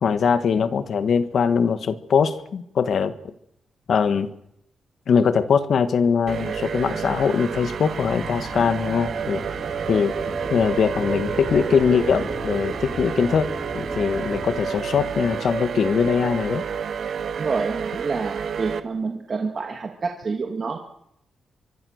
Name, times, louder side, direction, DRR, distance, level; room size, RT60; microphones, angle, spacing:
voice 1, 0.0-3.1 3.9-4.3 5.1-9.4 9.9-10.1 10.5-16.6, left 6 dB, 55° left, 12 dB, 1.6 m, -21 dB
sound 1, 6.3-18.8, right 7 dB, 60° right, 1.6 m, -30 dB
sound 2, 8.4-15.4, left 1 dB, 10° left, 5.4 m, -37 dB
voice 2, 17.4-20.8, right 4 dB, 35° right, 3 dB, 2.0 m, -28 dB
25.0 x 23.5 x 6.6 m, 0.78 s
wide cardioid pair, 155°, 0 cm